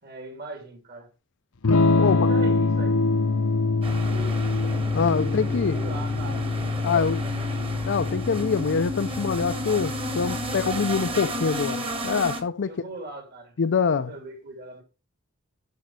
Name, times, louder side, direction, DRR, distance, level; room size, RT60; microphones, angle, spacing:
voice 1, 0.0-1.1 1.9-3.0 4.0-4.4 5.2-6.5 6.8-7.6 12.7-14.8, right 2 dB, 50° right, 2.9 m, -40 dB
Electric guitar / Strum, 1.6-11.4, left 3 dB, 90° left, 1.0 m, -25 dB
voice 2, 2.0-2.3 4.9-5.8 6.8-7.2 7.9-12.7 13.6-14.1, left 5 dB, 60° left, 0.5 m, -25 dB
sound 1, 3.8-12.4, right 1 dB, 25° right, 1.7 m, -32 dB
12.5 x 5.3 x 4.6 m
head